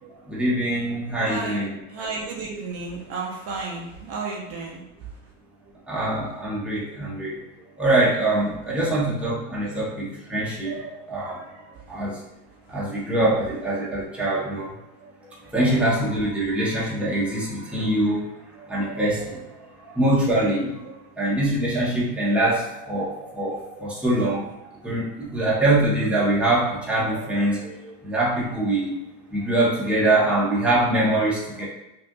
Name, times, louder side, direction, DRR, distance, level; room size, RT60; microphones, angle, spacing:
voice 1, 0.3-1.8 5.9-7.4 7.8-11.5 11.9-12.2 12.7-14.7 15.5-18.2 18.7-19.4 19.8-20.8 21.2-23.5 23.8-24.5 24.8-29.0 29.3-31.7, right 1 dB, 5° right, -7 dB, 1.0 m, -23 dB
voice 2, 1.2-1.6 1.9-4.8 8.6-9.0 9.6-9.7 23.7-23.8, right 3 dB, 55° right, -1 dB, 0.8 m, -33 dB
5.7 x 2.6 x 2.3 m, 0.93 s
cardioid pair, 150°, 30 cm